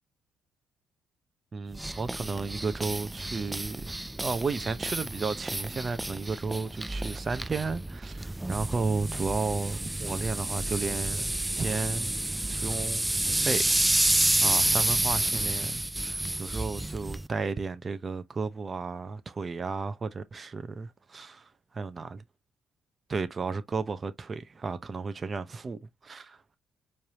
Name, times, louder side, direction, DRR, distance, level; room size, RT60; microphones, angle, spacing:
voice 1, 1.5-12.1 12.5-13.1 13.4-21.5 21.7-22.2 23.1-26.6, right 4 dB, 35° right, 0.7 m, -33 dB
sound 1, 1.7-17.3, right 1 dB, 10° right, 0.3 m, -30 dB
4.6 x 3.3 x 2.8 m
cardioid pair, 90°, 0 cm